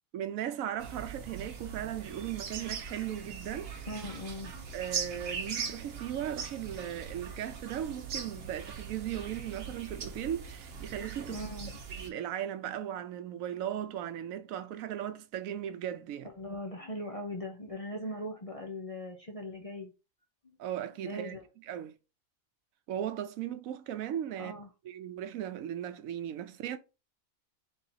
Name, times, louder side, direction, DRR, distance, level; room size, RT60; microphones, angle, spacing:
voice 1, 0.1-3.7 4.7-11.4 11.9-16.3 20.6-22.0 22.9-24.5 24.8-26.8, right 10 dB, 90° right, 1.0 m, -37 dB
sound 1, 0.8-12.1, right 6 dB, 50° right, 1.0 m, -41 dB
voice 2, 3.9-4.7 11.3-11.7 16.4-19.9 21.0-21.4 24.4-24.7, left 1 dB, 35° left, 0.6 m, -40 dB
3.9 x 2.8 x 4.1 m
omnidirectional pair, 1.4 m